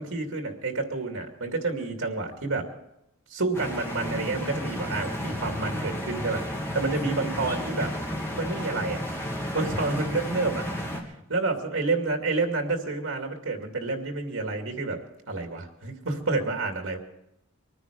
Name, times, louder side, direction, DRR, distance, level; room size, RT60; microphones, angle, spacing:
voice 1, 0.0-2.7 3.3-6.4 6.7-7.9 8.3-9.0 9.5-10.6 11.3-15.0 15.3-17.0, right 3 dB, 70° right, 4 dB, 2.5 m, -29 dB
sound 1, 3.5-11.0, equal, 10° left, 2.1 m, -32 dB
23.5 x 9.8 x 5.1 m, 0.85 s
head